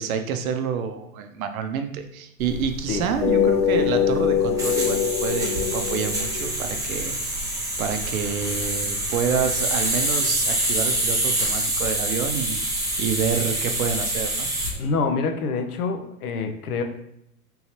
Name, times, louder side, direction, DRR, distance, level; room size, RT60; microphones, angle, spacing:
voice 1, 0.0-7.5 7.8-14.5, right 7 dB, 60° right, 7 dB, 0.6 m, -28 dB
sound 1, 2.4-14.7, right 1 dB, 5° right, 0.7 m, -26 dB
sound 2, 3.2-6.7, left 8 dB, 40° left, 0.4 m, -23 dB
voice 2, 14.8-16.8, left 4 dB, 70° left, 5 dB, 0.8 m, -26 dB
3.7 x 2.9 x 2.8 m, 0.78 s
hypercardioid pair, 130°, 47 cm